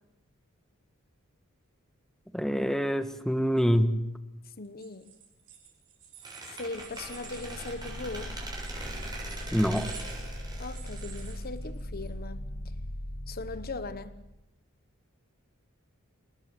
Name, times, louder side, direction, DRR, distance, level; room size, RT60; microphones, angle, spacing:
voice 1, 2.3-3.9 9.5-9.9, equal, ahead, 1.5 m, -25 dB
voice 2, 4.6-5.1 6.4-8.3 10.6-12.4 13.3-14.2, left 3 dB, 45° left, 1.0 m, -39 dB
sound 1, 4.6-12.1, right 9 dB, 55° right, 6.8 m, -52 dB
Squeak, 6.2-12.0, right 2 dB, 20° right, 7.3 m, -42 dB
sound 2, 6.8-14.4, equal, 70° left, 2.8 m, -40 dB
28.5 x 19.5 x 7.8 m
head